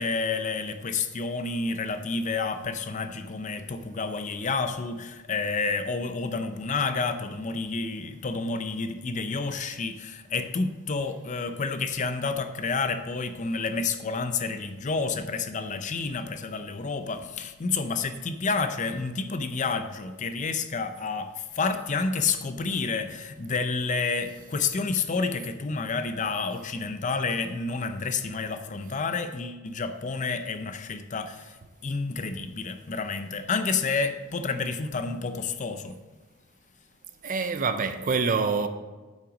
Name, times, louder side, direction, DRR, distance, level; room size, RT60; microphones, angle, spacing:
voice 1, 0.0-36.0, left 4 dB, 35° left, 0.5 m, -29 dB
voice 2, 37.2-38.7, right 4 dB, 40° right, 0.5 m, -26 dB
9.0 x 5.7 x 5.0 m
head